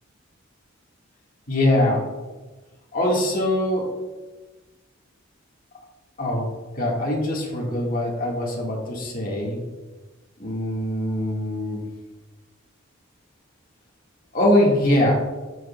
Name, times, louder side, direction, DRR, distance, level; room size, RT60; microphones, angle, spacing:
voice 1, 1.5-2.0 2.9-3.9 6.2-6.5 6.8-9.6 10.4-11.8 14.3-15.2, left 1 dB, 40° left, -2 dB, 1.8 m, -22 dB
10.5 x 6.5 x 2.3 m, 1.2 s
head